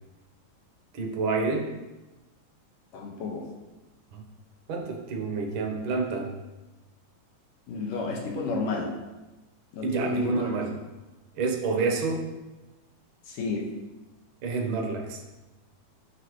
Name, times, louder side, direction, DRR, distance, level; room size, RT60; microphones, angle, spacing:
voice 1, 0.9-1.7 4.1-4.2 4.7-6.3 9.8-10.7 11.3-12.3 14.4-15.2, right 4 dB, 70° right, 1 dB, 1.2 m, -28 dB
voice 2, 2.9-3.4 7.7-8.9 9.7-10.5 13.3-13.7, left 3 dB, 80° left, -1 dB, 2.9 m, -31 dB
9.8 x 6.7 x 3.1 m, 1.1 s
omnidirectional pair, 3.8 m